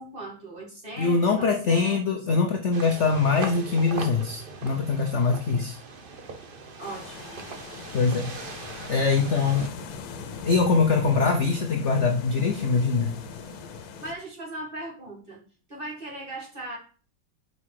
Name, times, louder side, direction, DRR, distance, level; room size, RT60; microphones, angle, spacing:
voice 1, 0.0-2.2 6.8-7.4 14.0-15.4 15.7-16.8, right 1 dB, 25° right, -3 dB, 2.1 m, -38 dB
voice 2, 1.0-5.8 7.9-8.3 8.9-9.8 10.4-13.1, left 4 dB, 60° left, 4 dB, 0.7 m, -23 dB
sound 1, 2.7-9.7, right 4 dB, 60° right, 0.5 m, -40 dB
sound 2, 6.8-14.1, left 5 dB, 90° left, 1.7 m, -41 dB
5.7 x 5.5 x 4.8 m, 0.39 s
omnidirectional pair, 2.2 m